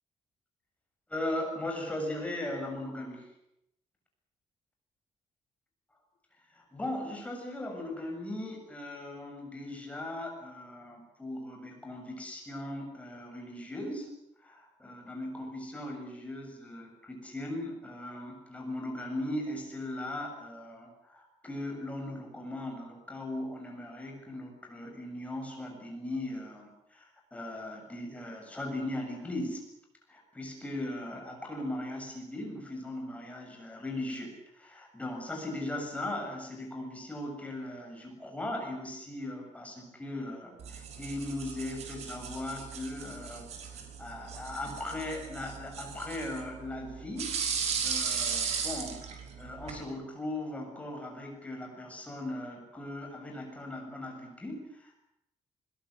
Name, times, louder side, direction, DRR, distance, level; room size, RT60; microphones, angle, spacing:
voice 1, 1.1-3.2 6.5-14.1 14.4-29.6 30.1-47.4 47.8-49.0 49.4-54.9, left 1 dB, 10° left, 1 dB, 7.6 m, -38 dB
sound 1, 40.6-49.8, right 6 dB, 65° right, 5.5 m, -37 dB
22.0 x 21.5 x 9.9 m, 0.83 s
cardioid pair, 165°, 12 cm